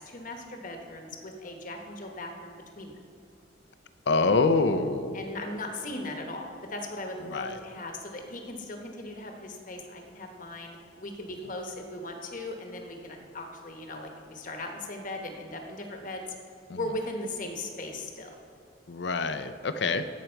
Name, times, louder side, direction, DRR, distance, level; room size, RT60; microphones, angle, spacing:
voice 1, 0.0-3.0 5.1-16.2 16.7-18.3, left 1 dB, 45° left, 3 dB, 1.1 m, -38 dB
voice 2, 4.1-5.2 7.3-7.6 16.7-16.8 18.9-20.1, left 3 dB, 60° left, 11 dB, 0.5 m, -26 dB
16.0 x 6.2 x 4.5 m, 2.7 s
head